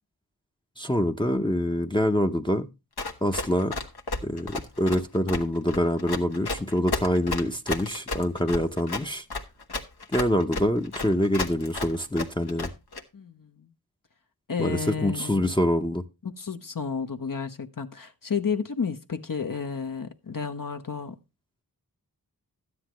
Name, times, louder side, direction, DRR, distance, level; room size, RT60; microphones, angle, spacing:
voice 1, 0.8-2.7 3.2-3.8 4.2-9.2 10.1-12.7 14.6-16.0, left 1 dB, 10° left, 0.7 m, -25 dB
Run, 3.0-13.0, left 3 dB, 75° left, 1.3 m, -32 dB
voice 2, 13.1-13.7 14.5-15.5 16.2-21.2, left 5 dB, 55° left, 0.9 m, -32 dB
12.5 x 9.7 x 3.0 m
wide cardioid pair, 55°, 39 cm